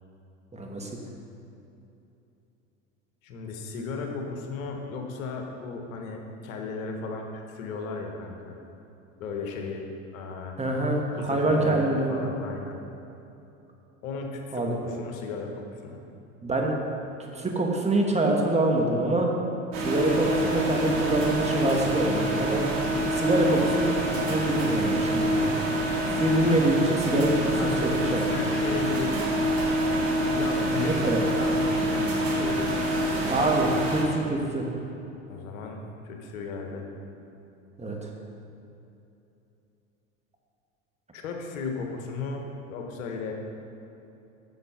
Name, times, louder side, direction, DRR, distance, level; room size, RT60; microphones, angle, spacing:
voice 1, 0.5-0.9 10.6-12.1 14.5-14.8 16.4-16.7 17.3-19.3 19.8-22.6 23.1-23.9 24.2-25.5 26.1-28.2 30.8-31.2 33.3-34.7 37.8-38.1, right 2 dB, 15° right, 0 dB, 1.4 m, -25 dB
voice 2, 3.2-8.6 9.2-10.6 11.1-12.8 14.0-16.0 27.6-29.4 30.2-31.0 31.3-33.3 35.3-36.9 41.1-43.3, left 4 dB, 70° left, 2 dB, 1.4 m, -35 dB
sound 1, 19.7-34.0, right 1 dB, 50° right, 2.1 m, -26 dB
7.8 x 6.8 x 5.8 m, 2.9 s
hypercardioid pair, 85°, 42 cm